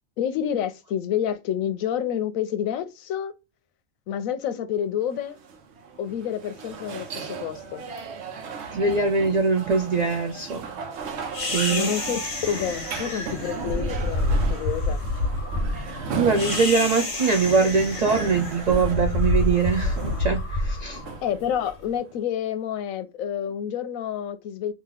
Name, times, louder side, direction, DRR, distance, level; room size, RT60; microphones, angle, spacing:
voice 1, 0.2-3.3 4.1-5.4 6.0-7.8 11.7-12.2 12.5-15.0 21.2-24.7, left 9 dB, 85° left, 1.0 m, -28 dB
sound 1, 5.1-22.1, right 5 dB, 60° right, 0.9 m, -36 dB
voice 2, 8.7-10.7 11.4-11.9 16.2-21.0, right 4 dB, 80° right, 0.3 m, -22 dB
sound 2, 11.3-21.7, left 1 dB, 55° left, 1.3 m, -28 dB
2.8 x 2.7 x 3.8 m
omnidirectional pair, 1.4 m